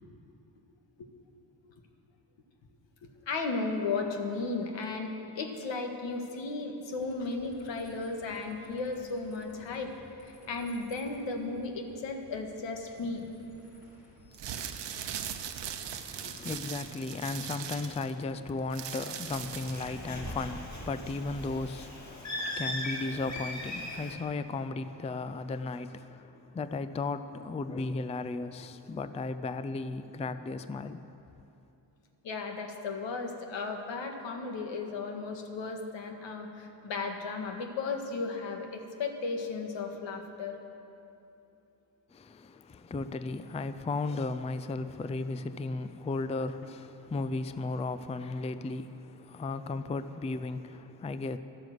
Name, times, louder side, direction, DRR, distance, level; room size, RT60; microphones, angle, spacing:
voice 1, 3.0-9.9 10.2-13.2 16.2-16.4 32.2-40.6, left 3 dB, 85° left, 1.7 m, -35 dB
sound 1, 6.9-16.0, left 1 dB, 55° left, 4.2 m, -58 dB
sound 2, 14.2-20.0, right 9 dB, 75° right, 1.0 m, -39 dB
voice 2, 15.8-31.1 42.1-51.4, left 3 dB, 15° left, 0.4 m, -35 dB
Bird, 19.1-24.1, left 1 dB, 40° left, 2.5 m, -39 dB
12.5 x 12.5 x 7.8 m
wide cardioid pair, 125°, 43 cm